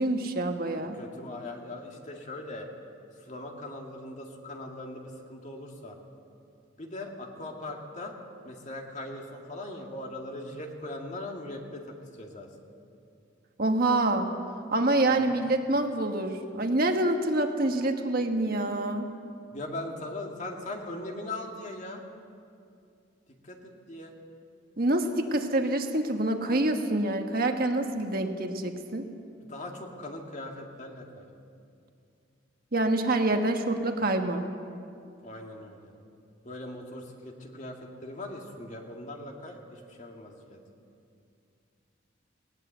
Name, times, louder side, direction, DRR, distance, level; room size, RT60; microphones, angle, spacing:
voice 1, 0.0-1.0 13.6-14.3 14.7-19.1 24.8-29.1 32.7-34.4, right 2 dB, 50° right, 4 dB, 1.4 m, -26 dB
voice 2, 0.8-2.7 3.2-6.0 6.8-8.1 8.4-12.5 15.1-15.4 19.5-22.0 23.4-24.1 29.3-31.3 35.2-35.9 36.4-40.6, left 1 dB, 40° left, 1 dB, 2.3 m, -40 dB
19.5 x 18.5 x 8.0 m, 2.5 s
head